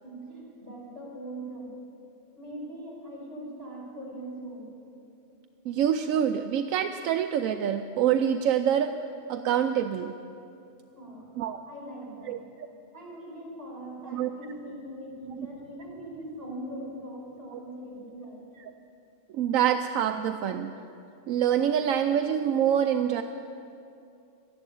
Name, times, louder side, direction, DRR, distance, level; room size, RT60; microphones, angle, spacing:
voice 1, 0.0-1.7 2.4-4.7 10.9-11.3 11.7-12.4 12.9-18.4, right 1 dB, 45° right, -4 dB, 5.5 m, -41 dB
voice 2, 5.7-8.9 9.3-10.1 11.4-11.6 12.3-12.4 14.1-14.3 17.5-17.6 19.3-20.7 21.3-23.2, right 9 dB, 85° right, 7 dB, 1.0 m, -25 dB
13.5 x 11.0 x 9.1 m, 2.6 s
omnidirectional pair, 1.4 m